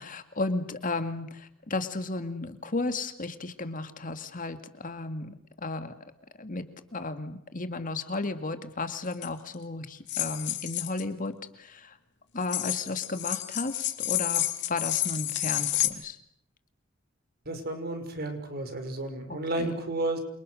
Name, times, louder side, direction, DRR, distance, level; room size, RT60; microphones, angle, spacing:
voice 1, 0.0-5.9 6.4-6.6 6.9-12.0 12.3-16.2 19.3-19.8, left 3 dB, 40° left, 9 dB, 2.1 m, -34 dB
sound 1, 9.1-9.3 10.1-11.0 12.4-15.9, left 14 dB, 60° left, 2.7 m, -30 dB
voice 2, 17.5-20.2, right 2 dB, 50° right, 6 dB, 5.7 m, -32 dB
28.5 x 28.5 x 6.5 m, 0.70 s
head